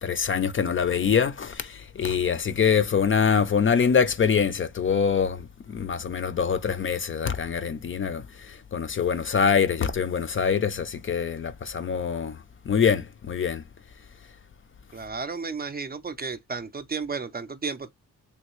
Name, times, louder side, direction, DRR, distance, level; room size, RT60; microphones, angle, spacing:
voice 1, 0.0-5.4 5.7-12.4 12.7-13.6, left 6 dB, 40° left, 0.4 m, -24 dB
voice 2, 14.9-17.9, right 4 dB, 30° right, 0.4 m, -33 dB
3.1 x 2.7 x 2.9 m
cardioid pair, 95°, 33 cm